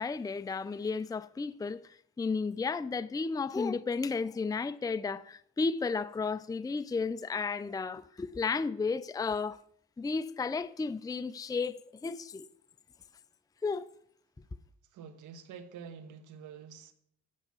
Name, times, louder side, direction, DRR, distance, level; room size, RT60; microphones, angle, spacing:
voice 1, 0.0-1.8 2.2-9.6 10.0-12.5 13.6-13.9, left 4 dB, 10° left, 0.5 m, -33 dB
voice 2, 14.9-16.9, right 7 dB, 80° right, 1.5 m, -47 dB
10.0 x 8.3 x 7.1 m
cardioid pair, 90°, 30 cm